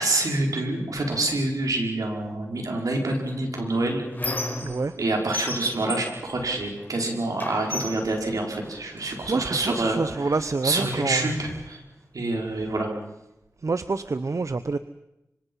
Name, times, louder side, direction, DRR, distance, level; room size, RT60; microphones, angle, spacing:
voice 1, 0.0-4.0 5.0-10.4 10.6-11.8 12.1-12.9, right 2 dB, 85° right, 1 dB, 5.4 m, -27 dB
Squeak, 3.3-5.0 5.3-7.0 7.4-9.1 9.9-10.0 10.3-11.3, left 2 dB, 30° left, 5.5 m, -35 dB
voice 2, 4.6-4.9 9.0-11.3 13.6-14.8, right 3 dB, 60° right, 13 dB, 0.8 m, -27 dB
25.5 x 25.5 x 5.7 m, 0.88 s
cardioid pair, 45°, 6 cm